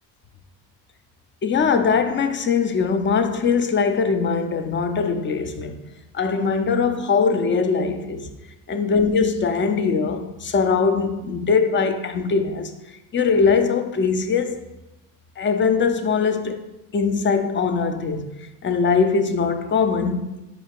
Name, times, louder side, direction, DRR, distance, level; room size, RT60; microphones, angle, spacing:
voice 1, 1.4-5.8 6.1-8.3 8.7-12.7 13.1-14.6 15.4-16.5 16.9-18.3 18.6-20.4, left 5 dB, 30° left, 0.4 m, -21 dB
4.2 x 2.5 x 4.5 m
supercardioid pair, 80°, 44 cm